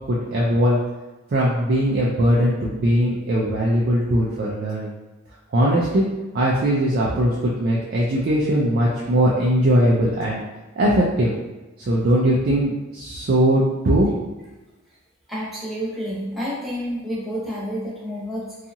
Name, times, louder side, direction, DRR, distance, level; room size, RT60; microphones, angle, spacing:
voice 1, 0.1-0.8 1.3-4.9 5.5-6.1 6.3-10.4 10.8-11.3 11.9-14.2, equal, 50° right, -5 dB, 0.4 m, -20 dB
voice 2, 15.3-18.5, equal, ahead, -9 dB, 0.9 m, -29 dB
2.8 x 2.4 x 2.6 m, 1.1 s
head